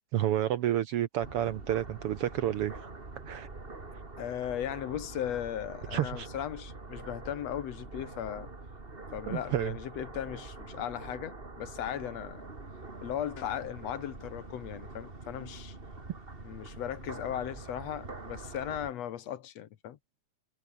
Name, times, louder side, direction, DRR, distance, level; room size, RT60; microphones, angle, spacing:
voice 1, 0.1-2.9 3.3-3.5 5.9-6.3 9.3-9.7, right 11 dB, 70° right, 1.5 m, -30 dB
sound 1, 1.2-18.9, right 3 dB, 20° right, 2.6 m, -45 dB
voice 2, 4.2-8.5 9.1-12.5 13.0-15.8 16.4-20.0, left 10 dB, 65° left, 2.2 m, -37 dB
omnidirectional pair, 3.3 m